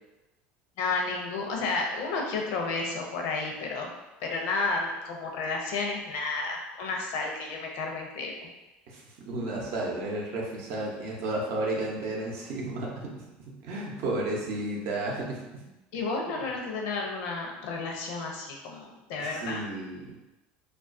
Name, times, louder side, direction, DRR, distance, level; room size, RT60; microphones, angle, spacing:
voice 1, 0.8-3.9 4.2-8.4 15.9-19.6, left 3 dB, 70° left, 1 dB, 0.5 m, -31 dB
voice 2, 8.9-13.1 13.6-15.4 19.2-20.1, right 2 dB, 65° right, -2 dB, 0.6 m, -32 dB
2.3 x 2.2 x 2.5 m, 1.0 s
supercardioid pair, 105°, 5 cm